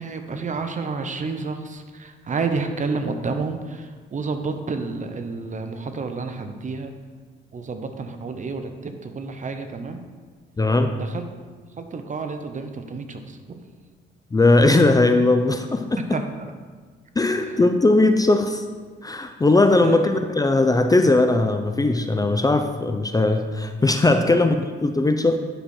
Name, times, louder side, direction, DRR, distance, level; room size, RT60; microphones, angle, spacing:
voice 1, 0.0-6.9 7.5-10.0 10.9-11.2 11.8-13.6 16.1-16.2 19.8-20.0 24.3-24.4, right 4 dB, 40° right, 7 dB, 1.0 m, -30 dB
voice 2, 10.6-11.0 14.3-16.2 17.2-18.6 19.0-25.4, left 2 dB, 20° left, 7 dB, 0.6 m, -19 dB
10.0 x 6.3 x 4.4 m, 1.5 s
cardioid pair, 90°, 20 cm